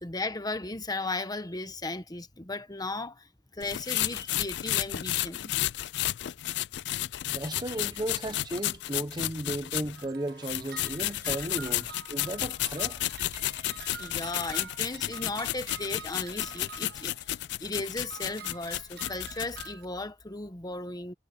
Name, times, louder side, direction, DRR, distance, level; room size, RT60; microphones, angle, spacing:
voice 1, 0.0-5.5 7.4-7.6 13.3-17.1 17.6-21.1, left 2 dB, 20° left, 1.3 m, -36 dB
sound 1, 3.6-10.1 10.4-19.7, left 15 dB, 70° left, 0.3 m, -32 dB
voice 2, 7.2-13.0, right 1 dB, 25° right, 1.1 m, -35 dB
sound 2, 9.9-17.4 17.8-19.9, right 8 dB, 60° right, 1.3 m, -47 dB
head